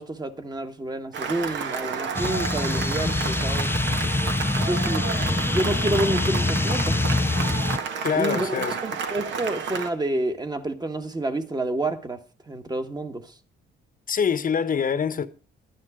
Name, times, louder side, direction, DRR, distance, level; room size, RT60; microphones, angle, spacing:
voice 1, 0.0-3.8 4.7-7.0 8.1-13.3, right 1 dB, 20° right, 1.5 m, -29 dB
Cheering / Applause, 1.1-9.9, right 6 dB, 70° right, 1.5 m, -31 dB
sound 1, 2.1-7.8, left 3 dB, 10° left, 0.5 m, -25 dB
voice 2, 8.0-8.8 14.1-15.3, left 7 dB, 45° left, 1.1 m, -24 dB
12.0 x 9.7 x 5.0 m
cardioid pair, 90°, 20 cm